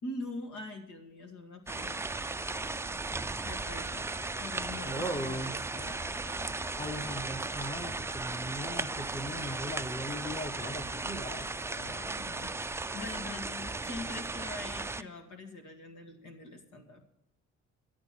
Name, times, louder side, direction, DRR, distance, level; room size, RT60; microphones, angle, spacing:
voice 1, 0.0-2.1 3.4-4.1 4.4-7.1 11.7-17.0, left 2 dB, 80° left, 5 dB, 2.1 m, -44 dB
sound 1, 1.7-15.0, right 3 dB, 10° right, 0.4 m, -36 dB
voice 2, 4.8-5.6 6.8-11.5, equal, 15° left, 7 dB, 1.4 m, -38 dB
12.5 x 8.7 x 6.1 m, 0.82 s
cardioid pair, 90°, 30 cm